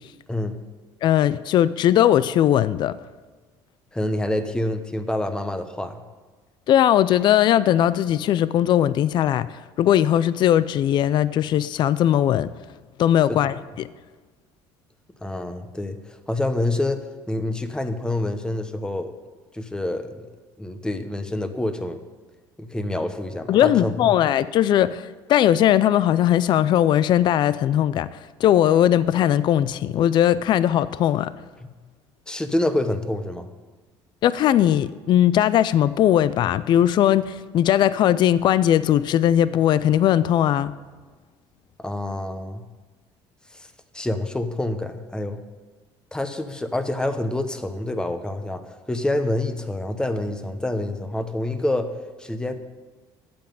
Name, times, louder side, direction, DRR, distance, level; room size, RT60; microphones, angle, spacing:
voice 1, 0.3-0.6 3.9-6.0 13.3-13.5 15.2-19.1 19.5-20.2 20.6-22.0 22.6-24.1 31.6-31.7 32.3-33.5 41.8-42.6 43.5-43.7 43.9-45.4 46.1-51.9 52.2-52.5, left 1 dB, 10° left, 9 dB, 1.0 m, -27 dB
voice 2, 1.0-3.0 6.7-9.5 9.8-12.5 13.0-13.9 23.5-28.1 28.4-31.3 34.2-40.7, left 11 dB, 50° left, 16 dB, 0.4 m, -19 dB
8.8 x 7.8 x 9.0 m, 1.3 s
cardioid pair, 110°, 10 cm